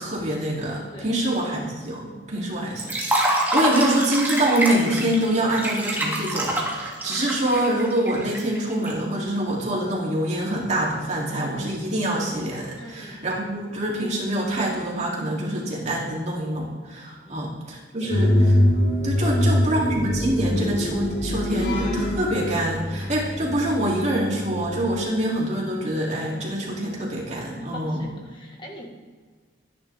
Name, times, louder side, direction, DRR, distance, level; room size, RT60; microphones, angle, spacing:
voice 1, 0.0-18.4 19.0-28.0, right 1 dB, 40° right, -3 dB, 3.4 m, -25 dB
Liquid, 2.8-8.9, right 1 dB, 10° right, 2.3 m, -26 dB
voice 2, 12.8-13.3 17.3-17.5 18.0-18.3 19.2-19.6 27.6-29.0, equal, 25° left, 0 dB, 1.9 m, -43 dB
sound 1, 18.1-25.0, left 1 dB, 60° left, 4.1 m, -24 dB
23.0 x 10.5 x 3.7 m, 1.5 s
head